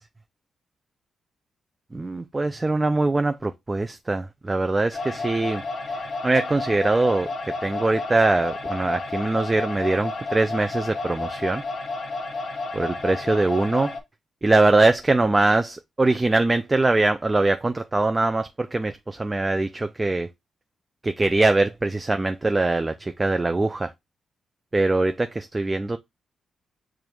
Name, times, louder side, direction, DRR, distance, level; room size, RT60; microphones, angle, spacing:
voice 1, 1.9-11.6 12.7-13.9 14.4-20.3 21.0-23.9 24.7-26.0, right 2 dB, 25° right, 0.4 m, -22 dB
sound 1, 4.9-14.0, left 3 dB, 55° left, 1.4 m, -31 dB
6.8 x 2.5 x 3.0 m
cardioid pair, 70°, 0 cm